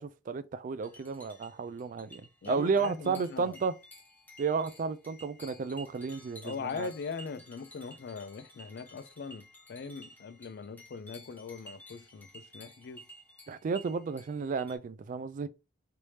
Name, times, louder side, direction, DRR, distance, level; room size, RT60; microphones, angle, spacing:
voice 1, 0.0-3.7 4.4-6.9 13.5-15.5, right 5 dB, 45° right, 0.3 m, -33 dB
sound 1, 0.8-14.8, equal, 10° left, 0.7 m, -54 dB
voice 2, 2.4-3.6 6.4-13.1, left 5 dB, 60° left, 0.4 m, -41 dB
3.3 x 2.7 x 3.1 m
head